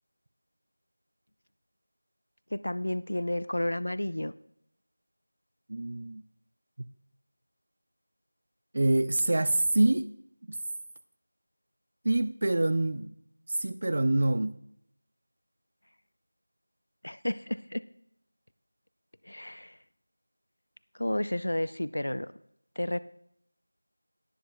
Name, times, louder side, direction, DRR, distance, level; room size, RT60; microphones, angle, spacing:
voice 1, 2.5-4.3 17.0-17.8 19.2-19.8 20.9-22.3 22.8-23.0, left 1 dB, 80° left, 16 dB, 0.4 m, -31 dB
voice 2, 5.7-6.2 8.7-10.1 10.5-10.6 12.0-13.1 13.5-14.6, right 2 dB, 40° right, 14 dB, 0.3 m, -26 dB
17.5 x 9.9 x 2.2 m, 0.74 s
figure-of-eight pair, 175°, 0 cm